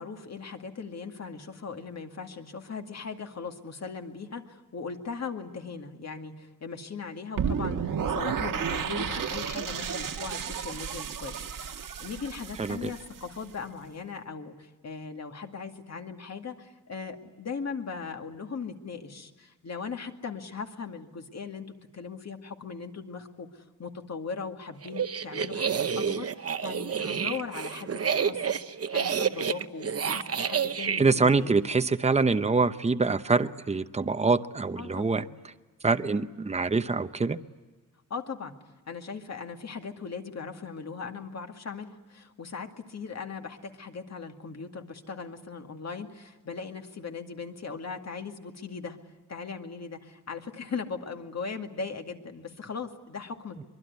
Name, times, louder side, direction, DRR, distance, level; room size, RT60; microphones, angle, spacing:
voice 1, 0.0-31.6 34.8-35.3 38.1-38.5 38.9-49.0 49.3-53.7, left 5 dB, 50° left, 5 dB, 2.3 m, -39 dB
sound 1, 7.4-13.4, right 7 dB, 75° right, 1.5 m, -32 dB
voice 2, 12.6-12.9 31.0-35.5 35.8-37.4, right 4 dB, 20° right, 11 dB, 0.8 m, -25 dB
sound 2, 24.8-31.0, right 7 dB, 45° right, 0.9 m, -29 dB
24.0 x 23.5 x 9.5 m, 1.2 s
wide cardioid pair, 140°, 33 cm